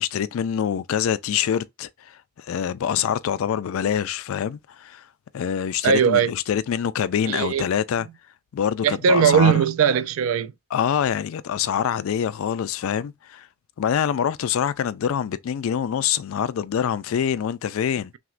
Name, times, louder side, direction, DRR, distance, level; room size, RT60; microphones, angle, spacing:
voice 1, 0.0-5.0 5.3-8.1 8.5-9.7 10.7-13.5 13.8-18.1, left 8 dB, 65° left, 0.3 m, -25 dB
voice 2, 5.8-6.3 7.3-7.6 8.8-10.5, right 7 dB, 65° right, 0.3 m, -19 dB
5.8 x 2.1 x 2.4 m
head